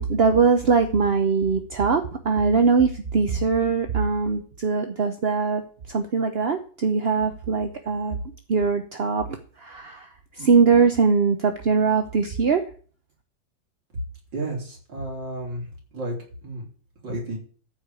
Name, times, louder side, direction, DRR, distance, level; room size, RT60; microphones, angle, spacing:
voice 1, 0.0-5.6 5.9-8.2 8.5-10.1 10.4-12.6, right 5 dB, 50° right, 6 dB, 0.8 m, -21 dB
voice 2, 14.3-15.6 15.9-16.2 16.4-16.7 17.0-17.4, right 2 dB, 70° right, -2 dB, 4.5 m, -31 dB
13.5 x 5.0 x 8.3 m, 0.42 s
omnidirectional pair, 2.0 m